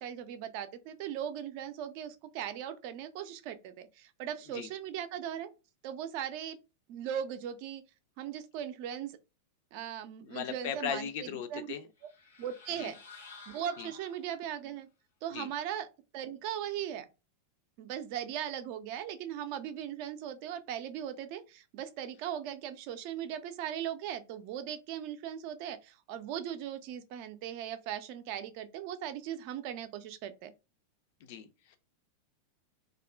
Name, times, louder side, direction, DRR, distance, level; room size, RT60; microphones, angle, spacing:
voice 1, 0.0-5.5 5.8-6.6 6.9-7.8 8.2-9.2 9.7-11.7 12.4-12.9 13.5-14.9 15.2-15.9 16.1-17.1 17.8-30.5, right 10 dB, 45° right, 0.4 m, -38 dB
voice 2, 10.2-11.9 12.8-12.9 13.8-13.9 15.3-15.5 31.2-31.8, left 8 dB, 50° left, 0.4 m, -38 dB
sound 1, 12.0-14.6, left 4 dB, 80° left, 0.8 m, -53 dB
2.4 x 2.1 x 3.3 m
figure-of-eight pair, 90°, 0 cm